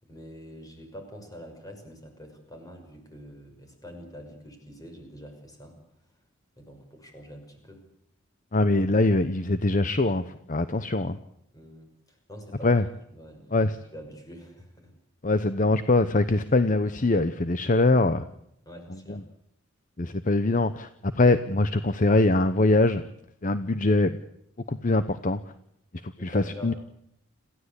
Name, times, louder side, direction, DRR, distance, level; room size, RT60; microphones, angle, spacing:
voice 1, 0.0-5.8 6.6-7.8 11.5-12.8 13.1-14.9 18.7-19.3 26.2-26.7, equal, 20° left, 5 dB, 6.1 m, -45 dB
voice 2, 8.5-11.2 12.6-12.8 13.5-13.8 15.2-18.2 19.1-19.2 20.0-23.0 23.4-24.2 24.7-25.4 26.0-26.7, left 2 dB, 40° left, 12 dB, 0.9 m, -23 dB
27.5 x 15.5 x 8.4 m, 0.75 s
head